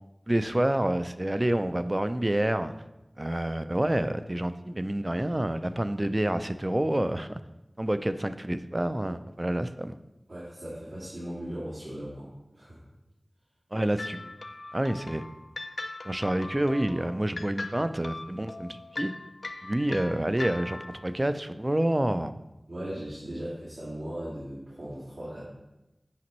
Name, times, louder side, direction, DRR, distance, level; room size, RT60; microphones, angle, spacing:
voice 1, 0.3-2.7 3.2-7.4 7.8-9.9 13.7-14.3 14.7-15.3 16.0-19.1 19.6-22.3, right 1 dB, 30° right, 11 dB, 0.4 m, -28 dB
voice 2, 10.3-12.3 12.5-12.8 19.9-20.0 22.7-25.4, right 1 dB, 90° right, -10 dB, 2.3 m, -38 dB
sound 1, 14.0-21.1, left 2 dB, 75° left, 0.4 m, -40 dB
8.5 x 5.1 x 3.1 m, 0.96 s
wide cardioid pair, 45°, 0 cm